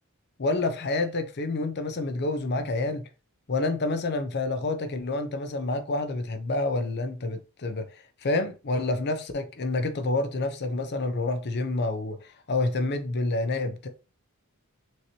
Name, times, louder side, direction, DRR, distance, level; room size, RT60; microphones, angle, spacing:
voice 1, 0.4-3.0 3.5-13.9, left 2 dB, 50° left, 0.7 m, -28 dB
6.3 x 2.9 x 2.8 m
head